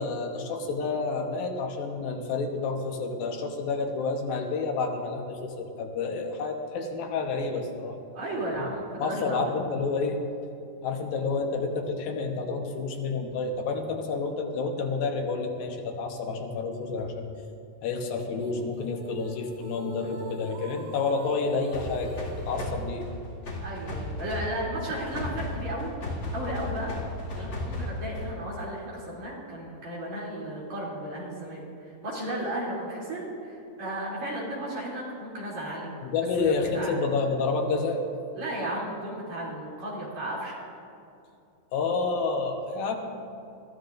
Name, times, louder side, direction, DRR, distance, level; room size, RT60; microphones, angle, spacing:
voice 1, 0.0-8.0 9.0-10.2 10.8-17.3 17.8-23.1 36.0-38.0 41.7-43.0, left 4 dB, 85° left, 3 dB, 3.0 m, -29 dB
voice 2, 8.1-9.5 23.6-25.9 26.3-26.9 27.3-36.0 36.4-37.0 38.3-40.5, right 1 dB, 50° right, -5 dB, 4.3 m, -34 dB
sound 1, 18.4-22.9, right 2 dB, 85° right, 3.3 m, -44 dB
sound 2, 21.7-28.5, left 2 dB, 35° left, 2.8 m, -35 dB
22.5 x 14.5 x 2.6 m, 2.6 s
omnidirectional pair, 4.1 m